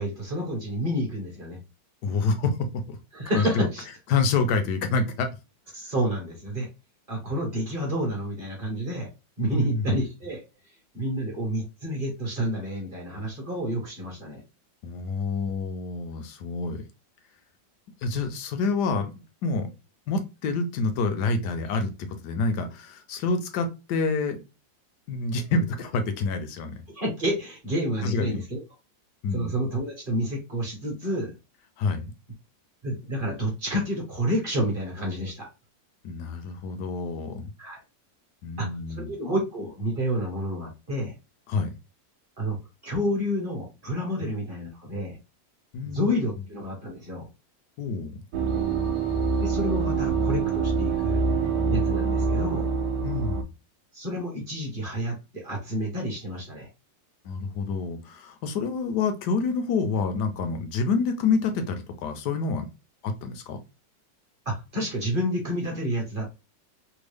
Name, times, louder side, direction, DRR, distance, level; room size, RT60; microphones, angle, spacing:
voice 1, 0.0-1.6 3.1-3.8 5.7-6.7 7.1-9.1 9.4-10.4 10.9-14.4 26.9-28.6 29.3-31.3 32.8-35.5 37.6-37.8 38.6-38.7 39.0-41.1 42.4-42.6 42.8-45.2 45.8-47.2 49.3-51.2 51.7-52.7 53.9-56.7 64.4-66.2, equal, 35° right, -1 dB, 1.1 m, -29 dB
voice 2, 2.0-3.0 3.3-3.7 4.1-5.3 9.5-10.0 14.8-16.8 18.0-19.7 20.1-24.4 25.1-26.8 28.0-28.4 29.2-29.5 31.8-32.1 36.0-37.5 38.4-39.1 41.5-41.7 45.7-46.1 47.8-48.2 53.0-53.5 57.2-62.7 63.0-63.6, left 4 dB, 70° left, 7 dB, 1.1 m, -27 dB
sound 1, 48.3-53.4, right 5 dB, 70° right, 1.0 m, -25 dB
3.5 x 2.2 x 3.3 m, 0.27 s
omnidirectional pair, 2.0 m